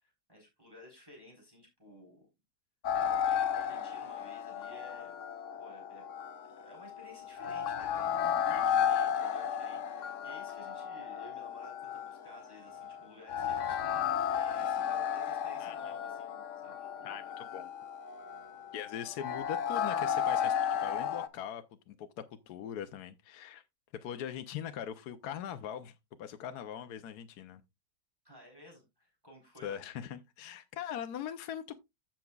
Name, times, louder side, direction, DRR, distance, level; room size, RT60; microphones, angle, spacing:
voice 1, 0.0-2.3 2.9-5.2 5.6-6.1 6.6-17.2 28.2-29.8, left 1 dB, 15° right, 3.8 m, -55 dB
sound 1, 2.8-21.3, left 8 dB, 60° left, 0.9 m, -34 dB
voice 2, 8.5-8.8 15.6-15.9 17.0-17.7 18.7-20.5 20.8-23.6 24.0-27.6 29.6-31.7, left 9 dB, 75° left, 1.2 m, -41 dB
15.0 x 5.9 x 2.3 m
omnidirectional pair, 1.7 m